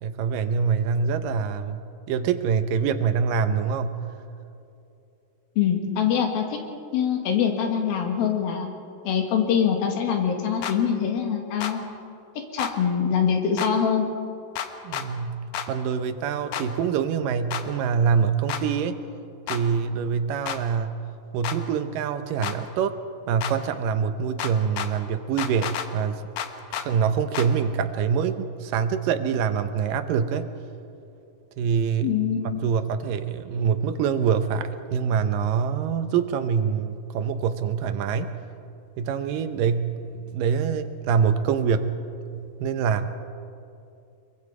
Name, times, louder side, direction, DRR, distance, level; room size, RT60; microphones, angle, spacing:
voice 1, 0.0-1.8 2.1-4.0 14.8-19.0 19.5-21.0 21.3-23.0 23.3-26.2 26.7-30.5 31.6-32.1 32.6-38.3 39.0-41.9 42.3-43.1, right 6 dB, 75° right, 9 dB, 2.5 m, -25 dB
voice 2, 5.6-6.6 6.9-8.7 9.1-11.8 12.4-14.1 32.0-32.6, left 7 dB, 85° left, 3 dB, 3.9 m, -24 dB
sound 1, 10.6-10.8 11.6-11.7 12.6-12.7 13.6-13.7 14.6-15.1 15.5-15.7 16.5-16.7 17.5-17.6 18.5-18.6 19.5-19.6 20.5-20.6 21.4-21.6 22.4-22.6 23.4-23.5 24.4-24.9 25.4-25.9 26.4-26.9 27.3-27.5, left 9 dB, 65° left, 2.2 m, -30 dB
24.0 x 23.0 x 4.9 m, 2.7 s
omnidirectional pair, 4.1 m